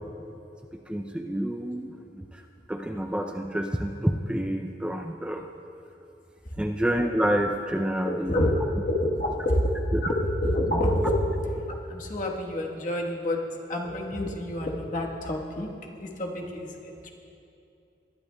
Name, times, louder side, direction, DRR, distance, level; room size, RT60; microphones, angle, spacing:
voice 1, 0.9-2.2 2.7-5.4 6.6-8.4 9.9-10.0, equal, 5° right, 4 dB, 0.4 m, -28 dB
voice 2, 8.0-8.6 8.9-11.1 11.5-11.6 11.9-15.7 16.0-17.1, left 1 dB, 50° left, 0 dB, 1.3 m, -28 dB
21.5 x 11.5 x 2.2 m, 2.7 s
head